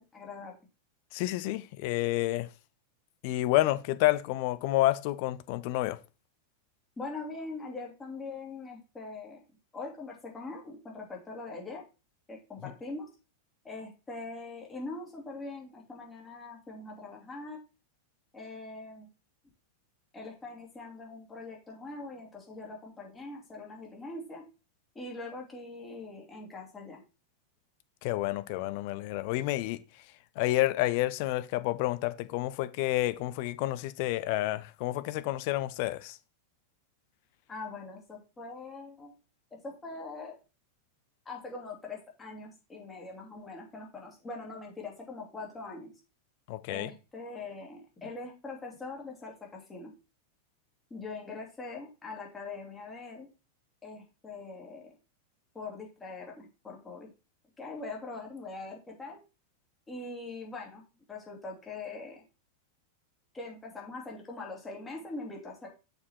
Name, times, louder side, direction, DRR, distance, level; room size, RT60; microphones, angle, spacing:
voice 1, 0.1-0.6 7.0-9.4 9.7-11.8 12.3-13.1 13.6-17.6 18.3-19.1 20.1-24.4 24.9-27.0 37.5-39.1 39.5-40.4 41.2-45.9 46.7-49.9 50.9-53.3 53.8-54.9 55.5-57.1 57.6-59.2 59.9-60.8 61.1-62.2 63.3-65.7, left 3 dB, 15° left, 2.9 m, -42 dB
voice 2, 1.1-2.5 3.2-6.0 28.0-29.8 30.4-36.2 46.5-46.9, left 16 dB, 45° left, 0.5 m, -29 dB
6.7 x 5.2 x 4.4 m
figure-of-eight pair, 90°, 0 cm